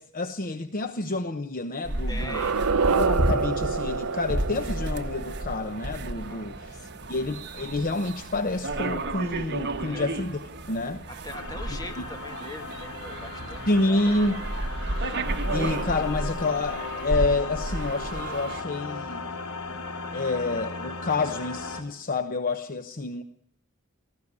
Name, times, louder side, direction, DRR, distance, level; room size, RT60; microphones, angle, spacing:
voice 1, 0.0-2.4 3.0-6.8 7.1-10.4 10.7-11.0 12.0-12.1 13.7-14.4 15.5-19.2 20.1-23.2, left 2 dB, 40° left, 8 dB, 0.9 m, -28 dB
sound 1, 1.8-18.6, right 2 dB, 50° right, 1.5 m, -32 dB
voice 2, 2.1-2.6 6.3-7.1 9.8-10.2 11.1-14.4, left 1 dB, 20° left, 5 dB, 2.2 m, -42 dB
sound 2, 2.2-7.1, right 5 dB, 75° right, 0.7 m, -28 dB
sound 3, 11.3-21.8, left 3 dB, 85° left, 3.2 m, -37 dB
18.0 x 15.0 x 9.7 m, 0.71 s
head